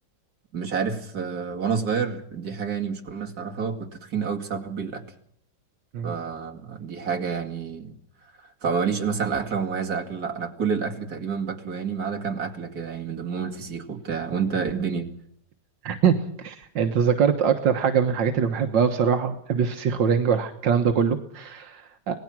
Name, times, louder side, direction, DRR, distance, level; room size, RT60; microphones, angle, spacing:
voice 1, 0.5-5.0 6.0-7.9 8.6-15.1, right 6 dB, 55° right, 1 dB, 2.8 m, -29 dB
voice 2, 15.8-22.1, right 7 dB, 80° right, 5 dB, 1.9 m, -23 dB
26.0 x 18.5 x 6.1 m, 0.68 s
omnidirectional pair, 1.9 m